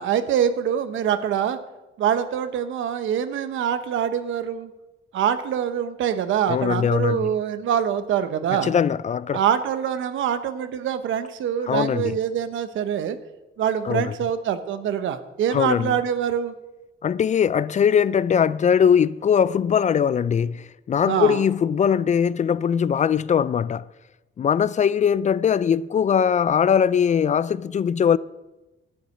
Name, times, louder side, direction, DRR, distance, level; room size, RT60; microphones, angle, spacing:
voice 1, 0.0-1.6 2.0-4.7 5.1-8.7 9.3-13.2 13.6-16.5 21.1-21.4, right 9 dB, 75° right, 1.0 m, -24 dB
voice 2, 6.5-7.3 8.5-9.4 11.7-12.2 13.8-14.1 15.5-15.9 17.0-23.9 24.4-28.2, left 7 dB, 35° left, 0.4 m, -21 dB
11.5 x 6.9 x 8.8 m
cardioid pair, 90°, 20 cm